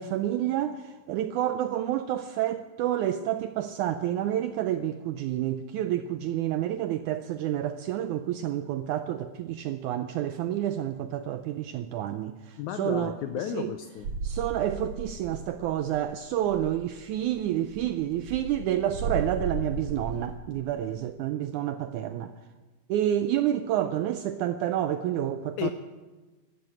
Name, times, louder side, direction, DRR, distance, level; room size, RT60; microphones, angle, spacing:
voice 1, 0.0-13.2 13.5-13.7 14.2-22.3 22.9-25.7, right 11 dB, 80° right, 1.7 m, -29 dB
voice 2, 12.6-14.1 25.6-25.7, left 10 dB, 80° left, 1.8 m, -33 dB
sound 1, 14.0-15.7 15.9-16.1 16.3-16.8 17.3-20.3, right 4 dB, 65° right, 3.3 m, -35 dB
13.0 x 12.5 x 7.8 m
omnidirectional pair, 4.0 m